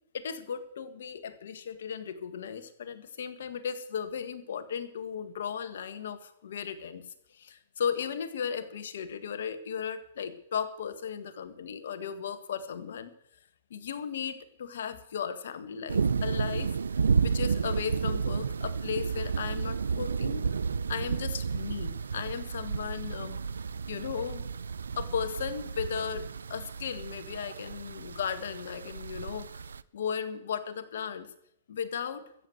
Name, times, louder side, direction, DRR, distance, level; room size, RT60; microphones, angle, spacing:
voice 1, 0.1-7.0 7.3-13.1 13.7-16.7 17.2-20.6 20.9-23.4 23.9-24.4 25.0-29.6 29.9-31.3 31.7-32.2, left 7 dB, 70° left, 11 dB, 1.6 m, -36 dB
sound 1, 15.9-29.8, right 5 dB, 85° right, 0.5 m, -32 dB
13.5 x 8.1 x 7.9 m, 0.73 s
hypercardioid pair, 125°, 0 cm